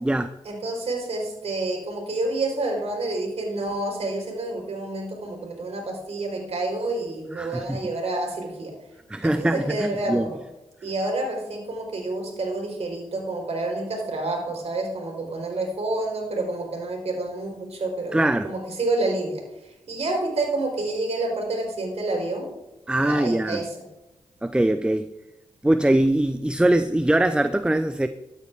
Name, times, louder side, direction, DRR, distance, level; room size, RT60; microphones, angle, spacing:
voice 1, 0.4-8.7 9.2-10.4 10.8-19.4 19.9-22.5 22.9-23.8, right 2 dB, 60° right, 1 dB, 4.5 m, -28 dB
voice 2, 7.4-7.9 9.1-10.3 18.1-18.5 22.9-23.6 24.4-25.1 25.6-28.1, right 1 dB, 10° right, 12 dB, 0.6 m, -22 dB
13.5 x 8.9 x 3.6 m, 0.99 s
supercardioid pair, 45°, 12 cm